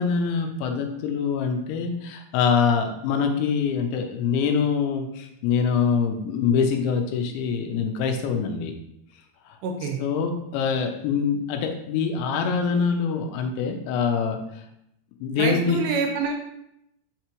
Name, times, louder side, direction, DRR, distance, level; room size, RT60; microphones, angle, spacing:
voice 1, 0.0-8.7 10.0-14.4 15.2-15.8, left 6 dB, 85° left, 5 dB, 3.1 m, -24 dB
voice 2, 9.6-10.0 15.4-16.3, right 4 dB, 80° right, 3 dB, 2.7 m, -26 dB
5.8 x 5.6 x 3.0 m, 0.79 s
omnidirectional pair, 5.2 m